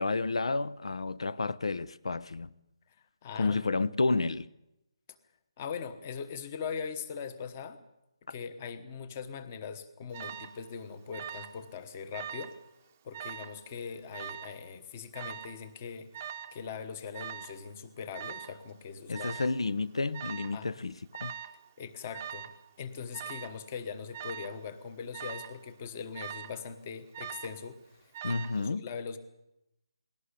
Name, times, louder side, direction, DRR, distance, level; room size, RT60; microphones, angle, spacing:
voice 1, 0.0-2.5 3.3-4.5 19.1-21.3 28.2-28.8, left 3 dB, 85° left, 0.9 m, -31 dB
voice 2, 3.2-3.6 5.6-7.8 8.3-12.5 13.0-19.4 20.5-20.7 21.8-22.5 22.8-29.2, left 6 dB, 20° left, 1.1 m, -41 dB
Alarm, 10.1-10.6 11.1-11.6 11.9-12.6 13.1-13.6 14.1-14.6 15.1-15.6 16.1-16.6 17.1-17.6 18.1-18.6 19.1-19.6 20.1-20.6 21.1-21.6 22.1-22.6 23.1-23.6 24.1-24.6 25.1-25.6 26.1-26.6 27.1-27.6 28.1-28.6, right 9 dB, 20° right, 0.8 m, -42 dB
21.0 x 17.5 x 8.3 m
hypercardioid pair, 175°, 3 cm